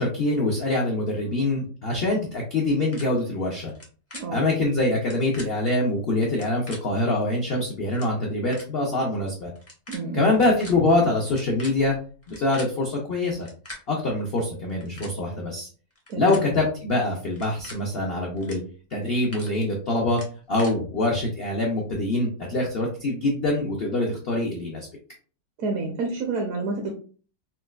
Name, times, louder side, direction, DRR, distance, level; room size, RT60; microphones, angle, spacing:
voice 1, 0.0-3.7 4.3-9.5 10.1-12.0 12.3-13.5 13.9-15.7 16.1-18.6 18.9-20.2 20.5-24.9, left 2 dB, 70° left, -1 dB, 0.5 m, -24 dB
sound 1, 2.9-3.0 3.7-3.8 4.1-4.2 5.0-5.5 6.3-6.8 7.6-7.7 7.9-8.1 8.5-8.7 9.5-10.0 10.3-10.7 11.3-12.7 13.3-13.8 14.6-15.1 15.9-16.4 17.3-17.8 18.4-18.6 18.9-19.5 20.1-20.7, left 1 dB, 20° left, 0.4 m, -41 dB
voice 2, 4.1-4.5 9.9-10.3 16.1-16.3 25.6-26.9, right 3 dB, 65° right, 2 dB, 0.9 m, -29 dB
4.2 x 2.2 x 2.3 m, 0.40 s
omnidirectional pair, 1.8 m